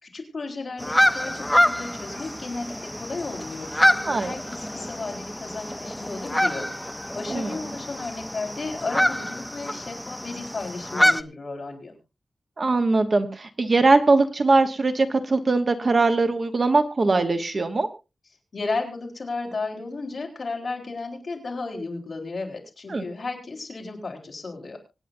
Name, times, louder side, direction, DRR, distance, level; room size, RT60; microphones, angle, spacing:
voice 1, 0.0-6.7 7.2-12.0 18.5-24.8, left 3 dB, 45° left, 0 dB, 4.0 m, -34 dB
sound 1, 0.8-11.2, equal, 5° left, 0.6 m, -26 dB
voice 2, 12.6-17.9 22.9-23.0, right 3 dB, 40° right, 8 dB, 1.1 m, -21 dB
25.0 x 9.2 x 2.6 m, 0.28 s
wide cardioid pair, 155°, 0 cm